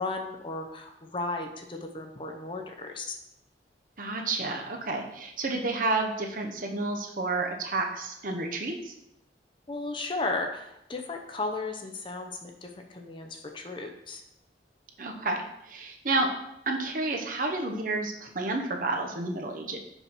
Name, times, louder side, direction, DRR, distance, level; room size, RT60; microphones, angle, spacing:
voice 1, 0.0-3.2 9.7-14.2, left 3 dB, 30° left, 3 dB, 0.6 m, -35 dB
voice 2, 4.0-8.9 15.0-16.3 16.7-19.8, right 2 dB, 50° right, 2 dB, 0.9 m, -30 dB
5.7 x 5.4 x 4.6 m, 0.82 s
head